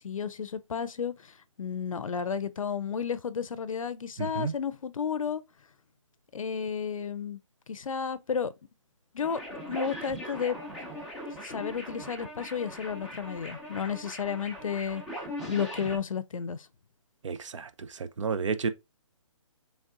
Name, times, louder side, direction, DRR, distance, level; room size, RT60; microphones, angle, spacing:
voice 1, 0.0-5.4 6.3-7.4 7.7-8.5 9.1-9.4 9.7-10.6 11.4-15.0 15.4-16.7, left 7 dB, 85° left, 0.5 m, -32 dB
voice 2, 4.2-4.5 17.2-17.7 18.2-18.7, right 5 dB, 65° right, 0.5 m, -30 dB
sound 1, 9.2-16.0, equal, ahead, 0.3 m, -40 dB
5.2 x 3.4 x 2.4 m
hypercardioid pair, 155°, 17 cm